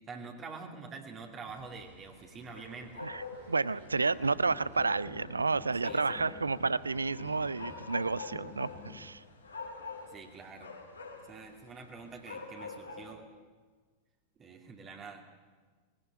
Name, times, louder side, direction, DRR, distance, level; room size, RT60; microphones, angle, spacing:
voice 1, 0.1-3.0 5.8-6.2 10.1-10.7 11.3-13.2 14.4-15.2, right 4 dB, 25° right, 2 dB, 2.6 m, -46 dB
sound 1, 1.5-13.1, left 4 dB, 75° left, 3.5 m, -47 dB
sound 2, 2.2-9.2, right 2 dB, 60° right, 4.8 m, -61 dB
voice 2, 3.0-9.2, right 4 dB, 80° right, 19 dB, 0.6 m, -31 dB
sound 3, 3.9-9.1, left 8 dB, 30° left, 1.7 m, -51 dB
20.0 x 17.0 x 9.8 m, 1.4 s
figure-of-eight pair, 90°, 0 cm